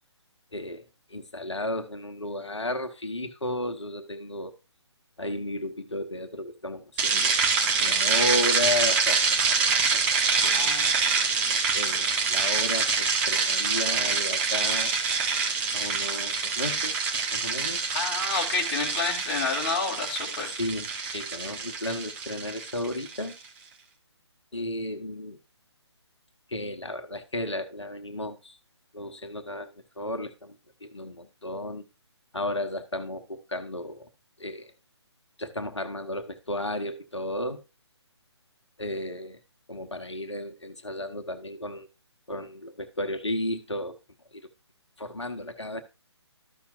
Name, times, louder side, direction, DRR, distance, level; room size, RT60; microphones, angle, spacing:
voice 1, 0.5-4.6 5.2-7.4 7.8-9.2 9.9-10.7 11.7-14.9 15.7-16.9 17.3-17.8 20.5-23.4 24.5-25.4 26.5-28.6 28.9-30.6 30.8-31.8 32.3-34.1 34.4-34.7 35.4-37.6 38.8-39.4 39.7-41.9 42.3-44.0 44.3-44.4 45.0-45.8, left 1 dB, 75° left, 1.0 m, -33 dB
sound 1, 7.0-23.3, right 5 dB, 10° right, 0.6 m, -26 dB
voice 2, 10.5-10.9 17.9-20.5, left 4 dB, 25° left, 1.8 m, -29 dB
13.0 x 5.7 x 2.4 m
figure-of-eight pair, 145°, 15 cm